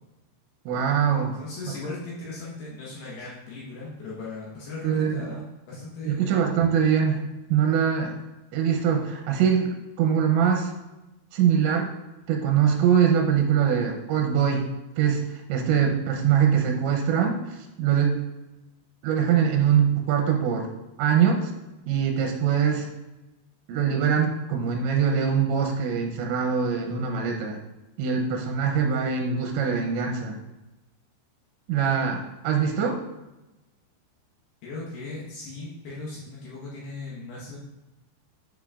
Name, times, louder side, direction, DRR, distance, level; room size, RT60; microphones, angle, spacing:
voice 1, 0.7-1.4 4.8-5.2 6.0-7.2 7.5-8.2 8.5-10.7 11.3-11.9 12.3-14.7 15.0-15.2 15.5-17.4 17.8-18.2 19.0-20.7 21.0-21.5 21.9-22.9 23.7-27.6 28.0-30.4 31.7-33.0, right 7 dB, 85° right, 2 dB, 2.9 m, -23 dB
voice 2, 1.3-6.4 34.6-37.6, left 3 dB, 70° left, -6 dB, 3.0 m, -38 dB
8.6 x 5.9 x 2.4 m, 1.0 s
omnidirectional pair, 5.3 m